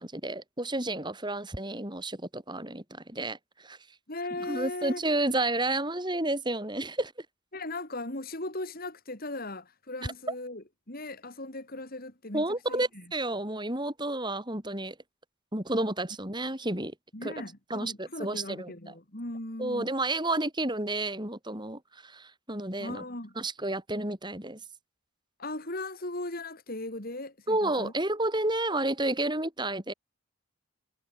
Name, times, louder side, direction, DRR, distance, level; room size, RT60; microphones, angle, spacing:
voice 1, 0.0-3.8 4.5-7.1 12.3-15.0 15.5-16.9 17.2-17.3 17.7-18.7 19.6-23.0 23.4-24.6 27.5-29.9, right 2 dB, 20° right, 5.6 m, -31 dB
voice 2, 4.1-5.0 7.5-13.1 17.1-19.9 22.8-23.3 25.4-27.9, left 2 dB, 40° left, 3.5 m, -38 dB
head